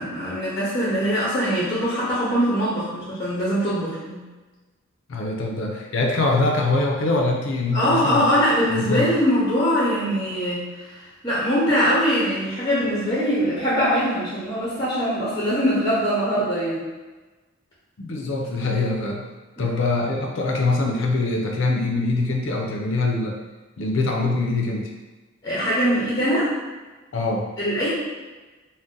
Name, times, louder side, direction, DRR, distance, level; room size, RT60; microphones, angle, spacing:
voice 1, 0.0-4.2 7.7-16.8 19.6-19.7 25.4-26.5 27.6-27.9, equal, 20° left, -8 dB, 0.6 m, -22 dB
voice 2, 5.1-8.3 8.7-9.1 18.0-19.2 19.6-23.4 23.8-24.9 27.1-27.5, left 2 dB, 60° left, 0 dB, 0.4 m, -23 dB
2.6 x 2.1 x 3.7 m, 1.2 s
head